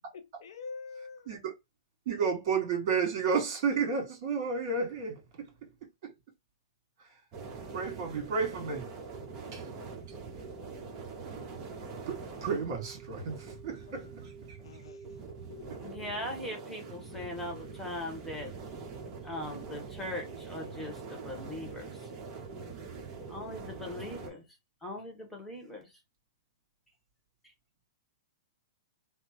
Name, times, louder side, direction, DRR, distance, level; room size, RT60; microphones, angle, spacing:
voice 1, 0.1-1.3 14.6-16.0, left 4 dB, 75° left, 0.7 m, -46 dB
voice 2, 2.1-6.1 7.0-7.2 7.7-8.9 9.5-9.7 10.1-10.2 12.1-14.6, right 5 dB, 50° right, 2.0 m, -32 dB
sound 1, 7.3-24.3, right 4 dB, 30° right, 1.0 m, -44 dB
voice 3, 15.8-18.5 19.2-22.1 23.3-26.0 27.4-27.5, left 1 dB, 5° left, 1.1 m, -40 dB
3.4 x 2.0 x 3.0 m
hypercardioid pair, 135°, 3 cm